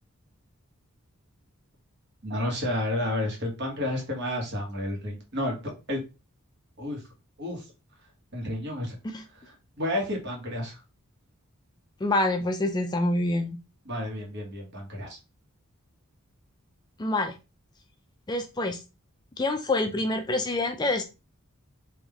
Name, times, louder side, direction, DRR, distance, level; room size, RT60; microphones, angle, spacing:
voice 1, 2.2-5.6 5.9-6.0 6.8-7.0 7.4-7.6 8.3-9.0 9.4-10.8 13.8-15.2, left 1 dB, 55° right, 0 dB, 1.3 m, -31 dB
voice 2, 12.0-13.6 17.0-17.4 18.3-18.8 19.4-21.1, left 2 dB, 20° left, 6 dB, 0.3 m, -26 dB
3.6 x 2.6 x 3.4 m, 0.29 s
head